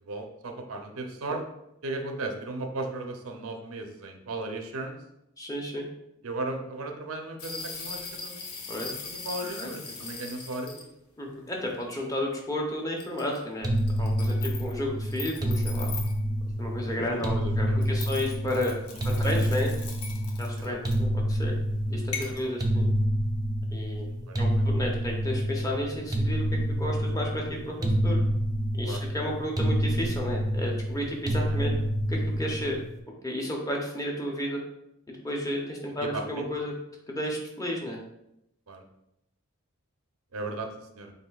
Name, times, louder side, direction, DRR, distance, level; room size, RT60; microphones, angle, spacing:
voice 1, 0.0-1.4 1.8-5.0 6.2-8.6 9.0-10.9 14.2-14.5 16.9-18.1 18.7-19.3 20.5-21.0 22.2-22.4 23.9-24.7 28.8-29.0 31.4-31.7 32.4-32.7 36.0-36.5 38.7-38.8 40.3-41.1, right 2 dB, 75° right, 4 dB, 0.6 m, -37 dB
voice 2, 5.4-5.9 8.7-8.9 9.4-9.7 11.2-13.7 14.0-15.9 16.6-18.7 19.2-19.7 20.4-21.5 21.9-22.9 23.7-24.1 24.4-28.2 28.7-31.7 32.1-32.8 33.2-34.6 35.1-36.7 37.1-38.0, left 1 dB, 15° left, -1 dB, 0.7 m, -32 dB
sound 1, 7.4-10.8 11.6-11.7 13.0-13.4 13.7-14.7 15.0-16.2 17.8-21.1 22.1-22.4, left 4 dB, 90° left, 0.8 m, -40 dB
sound 2, 13.6-32.9, equal, 15° right, 0.4 m, -28 dB
7.8 x 2.6 x 2.3 m, 0.83 s
head